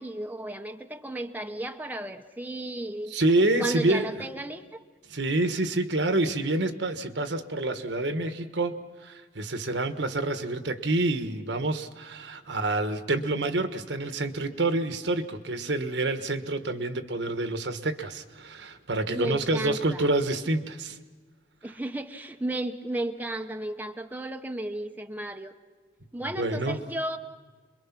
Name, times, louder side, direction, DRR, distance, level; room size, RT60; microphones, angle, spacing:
voice 1, 0.0-3.2 3.6-4.8 19.1-20.1 21.6-25.6 26.1-27.2, right 1 dB, 10° right, 5 dB, 0.9 m, -34 dB
voice 2, 3.1-4.0 5.1-21.0 26.4-26.8, right 2 dB, 70° right, 8 dB, 1.4 m, -27 dB
27.5 x 22.5 x 6.0 m, 1.4 s
head